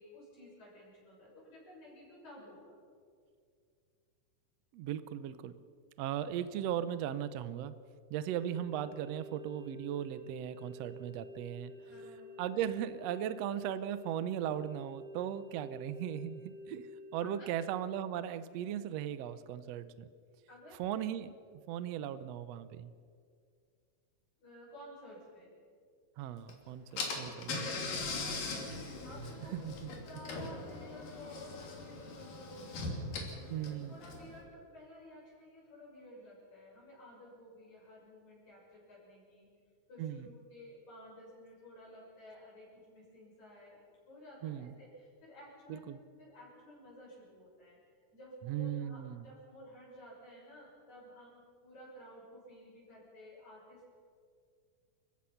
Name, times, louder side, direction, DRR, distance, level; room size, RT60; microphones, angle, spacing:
voice 1, 0.0-2.8 11.8-12.3 17.2-17.5 20.5-20.8 24.4-25.5 26.4-26.5 26.8-26.9 27.6-28.7 29.0-29.6 30.1-32.8 33.9-39.5 39.9-43.8 44.1-45.9 46.2-47.8 48.1-54.0, left 1 dB, 55° left, -4 dB, 8.0 m, -53 dB
voice 2, 4.7-5.5 6.0-7.7 8.1-11.7 12.4-16.9 17.1-20.1 20.8-22.9 26.2-27.7 29.5-29.9 33.5-34.0 40.0-40.2 44.4-44.7 45.7-46.0 48.4-49.3, right 10 dB, 80° right, 13 dB, 1.4 m, -37 dB
sound 1, 8.3-17.4, left 1 dB, 35° right, 1.6 m, -50 dB
Car / Engine, 26.5-26.6 27.0-34.4, left 3 dB, 70° left, 4.4 m, -40 dB
29.0 x 16.0 x 5.8 m, 2.2 s
omnidirectional pair, 3.9 m